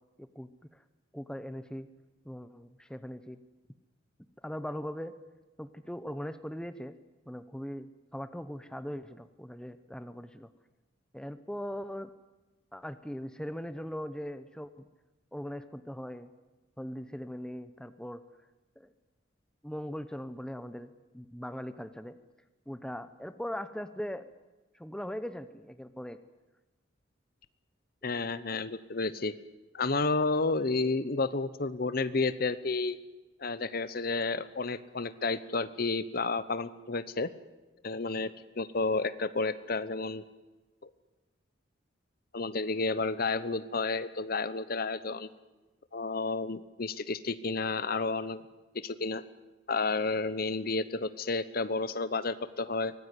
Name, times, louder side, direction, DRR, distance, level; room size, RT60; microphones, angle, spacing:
voice 1, 0.2-0.5 1.1-1.9 2.2-3.4 4.4-5.1 5.6-6.9 7.3-10.5 11.1-12.1 12.7-14.7 15.3-16.3 16.8-18.2 18.8-18.9 19.6-22.2 22.7-24.3 24.7-26.2, equal, 5° left, 11 dB, 0.8 m, -40 dB
voice 2, 28.0-29.3 29.7-33.0 33.4-37.3 37.8-40.2 40.8-40.9 42.3-45.3 45.9-48.4 48.7-49.2 49.7-52.9, left 3 dB, 50° left, 15 dB, 0.9 m, -31 dB
24.5 x 18.5 x 9.8 m, 1.1 s
head